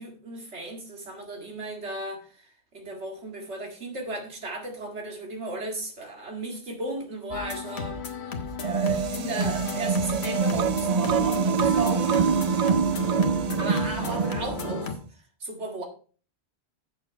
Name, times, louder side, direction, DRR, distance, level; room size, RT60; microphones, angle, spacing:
voice 1, 0.0-8.0 8.6-12.2 13.6-15.8, right 2 dB, 85° right, 2 dB, 2.3 m, -35 dB
sound 1, 7.3-15.0, left 5 dB, 70° left, 1.3 m, -34 dB
sound 2, 8.6-14.9, right 6 dB, 50° right, 0.5 m, -25 dB
8.3 x 6.6 x 4.4 m, 0.40 s
omnidirectional pair, 1.1 m